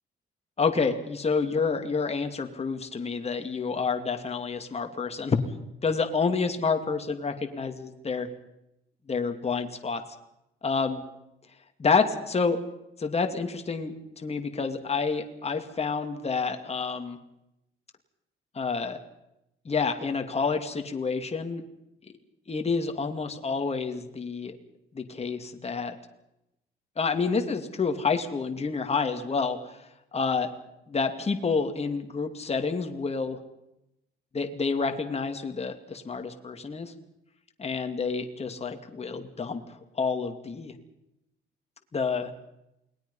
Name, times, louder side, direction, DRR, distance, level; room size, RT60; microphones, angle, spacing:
voice 1, 0.6-5.4 5.8-8.3 9.1-10.0 10.6-10.9 11.8-12.6 13.0-17.2 18.5-19.0 19.7-21.6 22.5-24.6 24.9-25.9 27.0-29.6 30.1-30.5 30.9-33.4 34.3-36.9 37.6-39.6 40.0-40.7 41.9-42.3, left 5 dB, 30° left, 5 dB, 2.5 m, -28 dB
28.5 x 20.5 x 5.6 m, 0.85 s
cardioid pair, 90°, 20 cm